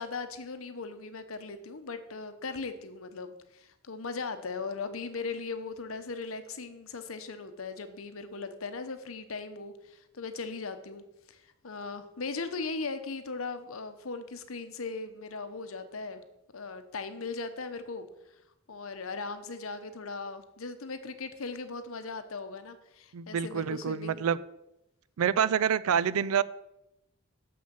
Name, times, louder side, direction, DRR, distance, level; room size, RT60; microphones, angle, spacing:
voice 1, 0.0-16.2 16.5-18.1 18.7-24.3, left 4 dB, 75° left, 10 dB, 0.9 m, -38 dB
voice 2, 23.1-24.4 25.2-26.4, right 8 dB, 85° right, 18 dB, 0.4 m, -27 dB
6.8 x 6.3 x 7.0 m, 0.87 s
head